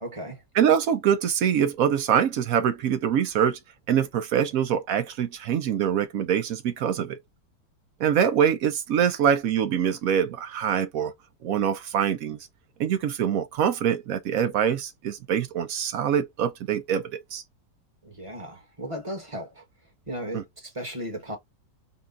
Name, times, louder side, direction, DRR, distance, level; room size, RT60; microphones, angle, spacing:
voice 1, 0.0-0.4 18.0-19.6 20.1-21.4, equal, 20° right, 1.1 m, -36 dB
voice 2, 0.5-3.6 3.9-7.2 8.0-11.1 11.4-12.4 12.8-17.4 20.3-20.4, right 8 dB, 70° right, 0.8 m, -24 dB
4.1 x 2.3 x 3.7 m
omnidirectional pair, 1.9 m